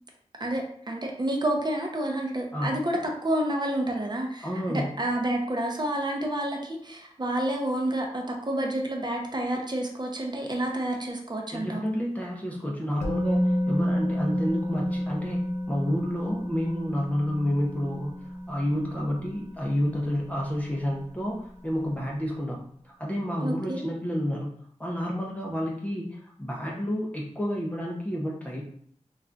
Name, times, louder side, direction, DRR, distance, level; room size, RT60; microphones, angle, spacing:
voice 1, 0.4-11.8 23.4-23.9, right 1 dB, 35° right, 1 dB, 0.6 m, -29 dB
voice 2, 4.4-4.9 11.5-24.5 24.8-28.6, equal, 10° left, -3 dB, 0.5 m, -30 dB
Musical instrument, 13.0-20.9 21.2-21.4, equal, 70° left, 0.6 m, -30 dB
2.3 x 2.2 x 3.8 m, 0.62 s
wide cardioid pair, 75°, 12 cm